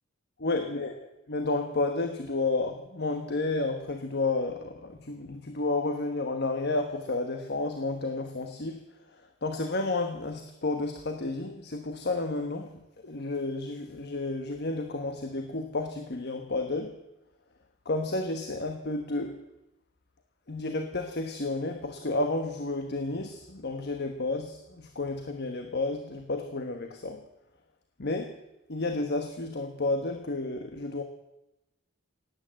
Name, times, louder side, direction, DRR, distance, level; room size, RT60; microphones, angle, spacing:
voice 1, 0.4-1.0 1.3-8.8 9.4-17.0 17.8-19.4 20.5-27.2 28.0-28.3 28.7-31.0, left 2 dB, 55° left, 6 dB, 1.2 m, -31 dB
18.0 x 9.3 x 7.6 m, 0.94 s
head